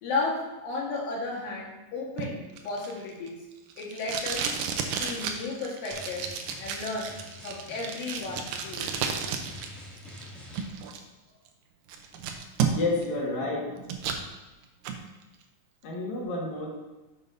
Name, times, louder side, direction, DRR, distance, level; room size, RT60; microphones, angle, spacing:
voice 1, 0.0-3.4 3.8-4.5 4.9-6.3 6.6-7.1 7.4-9.0, left 3 dB, 85° left, -3 dB, 3.3 m, -34 dB
Packing tape duct tape, 2.2-9.7 10.0-11.0 11.5-11.6 11.9-13.1 13.4-14.2 14.6-15.0, right 6 dB, 80° right, 2.3 m, -32 dB
Drum, 5.9-10.7, left 1 dB, ahead, 1.3 m, -46 dB
voice 2, 12.7-13.7 15.8-16.8, left 2 dB, 60° left, -1 dB, 2.3 m, -30 dB
9.3 x 7.4 x 2.7 m, 1.1 s
omnidirectional pair, 4.0 m